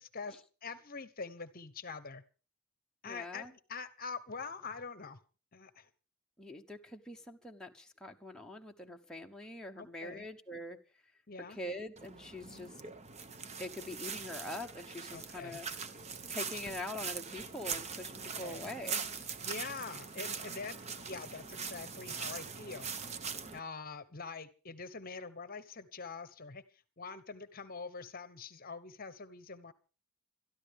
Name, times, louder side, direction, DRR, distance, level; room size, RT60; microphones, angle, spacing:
voice 1, 0.0-2.2 3.0-5.2 5.5-5.9 9.7-10.3 11.3-11.6 12.4-12.7 15.1-15.6 18.2-18.7 19.4-22.9 23.5-29.7, left 4 dB, 40° left, 14 dB, 1.0 m, -45 dB
voice 2, 3.1-3.5 6.4-11.0 11.5-12.8 13.6-15.7 16.3-19.0, left 1 dB, 5° left, 2 dB, 1.1 m, -44 dB
sound 1, 12.0-23.6, right 6 dB, 30° right, 0.9 m, -42 dB
22.5 x 13.0 x 3.6 m, 0.35 s
head